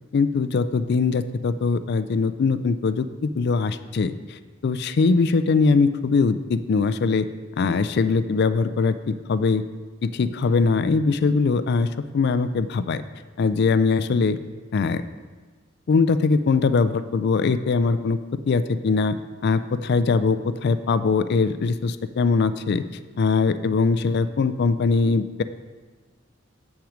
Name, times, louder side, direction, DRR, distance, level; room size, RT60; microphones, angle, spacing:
voice 1, 0.1-4.2 4.6-7.3 7.6-9.6 10.0-11.9 12.1-13.0 13.4-14.4 14.7-15.0 15.9-18.2 18.5-19.2 19.4-22.8 23.2-25.4, left 4 dB, 55° left, 12 dB, 0.4 m, -21 dB
7.4 x 5.9 x 5.0 m, 1.4 s
head